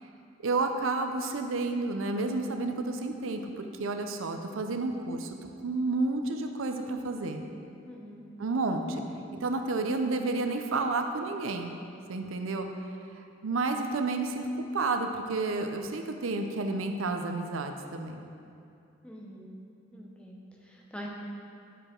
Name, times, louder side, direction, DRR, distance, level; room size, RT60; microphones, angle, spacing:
voice 1, 0.4-5.4 5.6-7.4 8.4-9.0 9.4-11.7 12.1-12.7 13.4-14.5 14.7-18.2, right 3 dB, 80° right, 5 dB, 0.5 m, -30 dB
voice 2, 7.9-8.3 19.0-19.6 19.9-21.1, equal, 5° left, -2 dB, 0.8 m, -45 dB
10.0 x 4.8 x 4.5 m, 2.5 s
head